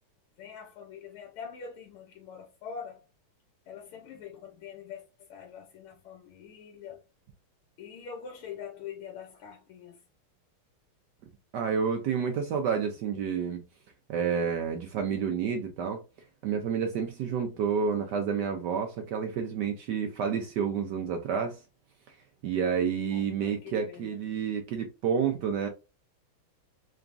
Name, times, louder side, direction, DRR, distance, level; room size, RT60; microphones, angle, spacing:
voice 1, 0.4-3.0 3.7-7.0 7.8-10.0 23.1-24.2, left 7 dB, 80° left, 1.7 m, -44 dB
voice 2, 11.5-13.6 14.1-16.0 16.4-21.6 22.1-22.2 22.4-25.7, right 6 dB, 75° right, 0.9 m, -29 dB
3.9 x 3.4 x 2.5 m
omnidirectional pair, 2.4 m